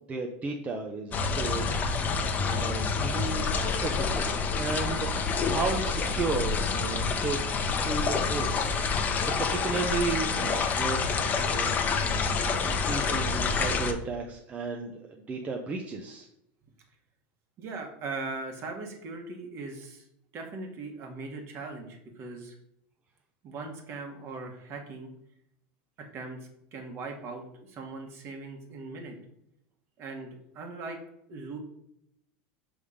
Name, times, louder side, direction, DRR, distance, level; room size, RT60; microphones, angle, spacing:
voice 1, 0.0-1.7 2.4-8.7 9.2-11.0 11.3-12.3 12.6-16.3, right 4 dB, 25° right, 2 dB, 0.7 m, -34 dB
sound 1, 1.1-13.9, left 5 dB, 30° left, 0.8 m, -28 dB
voice 2, 17.6-20.0 20.3-22.5 23.4-25.1 26.1-26.4 26.7-29.2 30.0-30.3 30.5-31.0 31.3-31.6, right 3 dB, 45° right, 3 dB, 1.5 m, -39 dB
5.5 x 3.5 x 5.0 m, 0.77 s
supercardioid pair, 110°, 6 cm